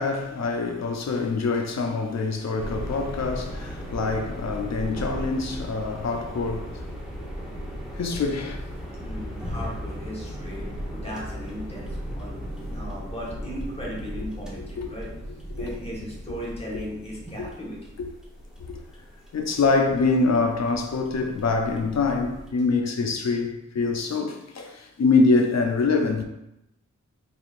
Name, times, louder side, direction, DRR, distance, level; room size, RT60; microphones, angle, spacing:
voice 1, 0.0-6.9 8.0-8.6 14.8-14.9 15.6-15.7 17.4-17.5 18.0-18.1 18.7-18.8 19.3-26.2, left 3 dB, 60° left, 0.5 m, -25 dB
sound 1, 2.6-22.5, equal, ahead, 0.8 m, -37 dB
voice 2, 9.0-12.4 12.7-15.1 15.5-17.9, equal, 20° left, 1.1 m, -37 dB
3.5 x 3.5 x 2.4 m
wide cardioid pair, 75°, 30 cm